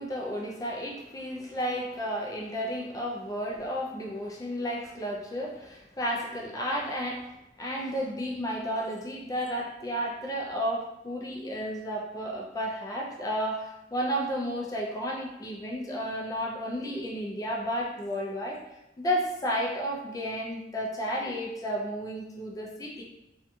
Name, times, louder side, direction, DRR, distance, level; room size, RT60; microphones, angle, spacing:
voice 1, 0.0-7.3 7.6-18.6 19.0-23.0, equal, 20° left, -1 dB, 0.3 m, -32 dB
2.6 x 2.6 x 2.2 m, 0.94 s
head